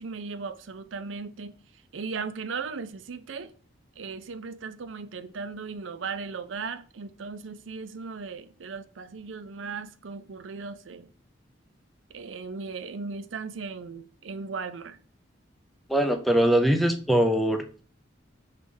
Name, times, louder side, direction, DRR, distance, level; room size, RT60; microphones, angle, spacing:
voice 1, 0.0-1.5 1.9-3.5 4.0-11.1 12.1-15.0, right 4 dB, 85° right, 0.5 m, -37 dB
voice 2, 15.9-17.8, right 1 dB, ahead, 0.5 m, -22 dB
6.2 x 3.3 x 5.4 m
head